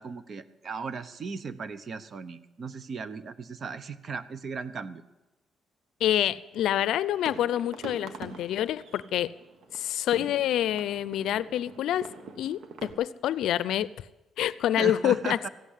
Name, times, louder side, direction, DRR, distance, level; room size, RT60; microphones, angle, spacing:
voice 1, 0.0-5.0 14.8-15.5, right 5 dB, 45° right, 0.9 m, -36 dB
voice 2, 6.0-9.3 9.7-13.9 14.4-15.4, left 12 dB, 80° left, 0.5 m, -27 dB
sound 1, 6.6-12.9, right 4 dB, 65° right, 1.5 m, -45 dB
15.5 x 8.4 x 9.9 m
cardioid pair, 90°, 0 cm